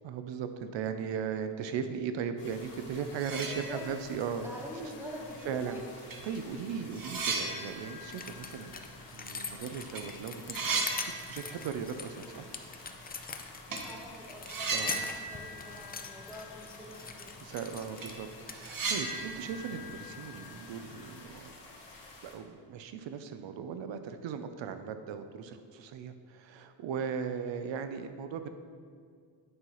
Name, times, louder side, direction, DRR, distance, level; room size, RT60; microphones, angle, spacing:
voice 1, 0.0-4.5 5.4-5.8 6.2-8.7 9.1-10.8 11.3-12.5 14.7-15.0 17.4-21.5 22.2-28.5, right 7 dB, 85° right, 9 dB, 0.5 m, -38 dB
sound 1, 2.4-22.3, left 2 dB, 75° left, 1.5 m, -51 dB
sound 2, 2.8-2.9 3.1-4.2 4.6-4.7 5.6-5.7 6.1-9.6 9.8-10.0 10.3-11.9 12.1-12.2 13.7-13.9 14.4-16.6 16.8-16.9 17.4-17.5 17.8-21.0, right 3 dB, 50° right, 1.1 m, -37 dB
voice 2, 3.4-3.8 4.4-5.8 12.2-12.4 13.8-17.4, equal, 5° right, -2 dB, 1.3 m, -45 dB
sound 3, 7.6-7.7 8.0-18.2 18.5-19.2 20.2-20.4, left 5 dB, 20° left, 0.4 m, -43 dB
9.4 x 5.5 x 3.0 m, 2.2 s
cardioid pair, 105°, 44 cm